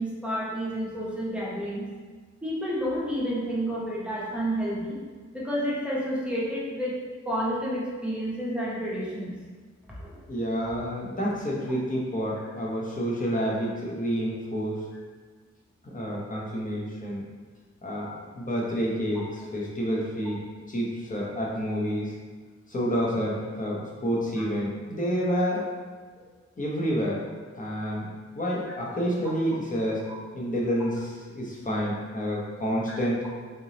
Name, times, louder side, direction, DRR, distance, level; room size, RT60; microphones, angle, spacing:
voice 1, 0.0-1.9 2.4-4.9 5.3-7.0 7.2-9.3 9.9-10.2 24.4-24.5 30.1-30.2 32.9-33.0, equal, 5° right, -6 dB, 0.8 m, -30 dB
voice 2, 10.3-14.8 15.8-17.2 17.8-20.4 20.7-22.1 22.7-25.6 26.2-26.3 26.6-27.2 27.6-28.1 28.3-30.0 30.3-33.3, equal, 30° left, -4 dB, 0.8 m, -29 dB
3.8 x 3.4 x 2.8 m, 1.5 s
wide cardioid pair, 160°, 29 cm